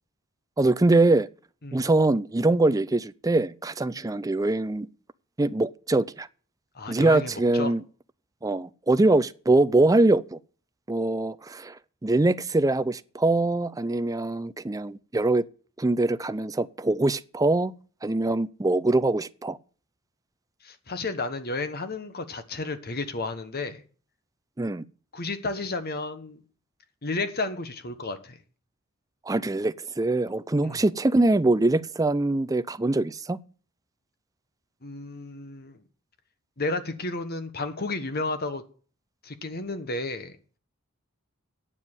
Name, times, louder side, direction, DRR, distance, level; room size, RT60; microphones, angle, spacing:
voice 1, 0.6-1.3 1.7-4.9 5.4-6.3 6.9-7.8 8.4-10.4 10.9-15.4 15.8-17.7 18.0-19.6 24.6-24.8 29.3-33.4, right 2 dB, 15° right, 0.5 m, -23 dB
voice 2, 6.7-7.7 20.6-23.8 25.1-26.4 27.0-28.4 30.6-30.8 34.8-35.8 36.6-38.6 39.2-40.4, left 3 dB, 45° left, 1.2 m, -32 dB
9.8 x 7.4 x 7.2 m
head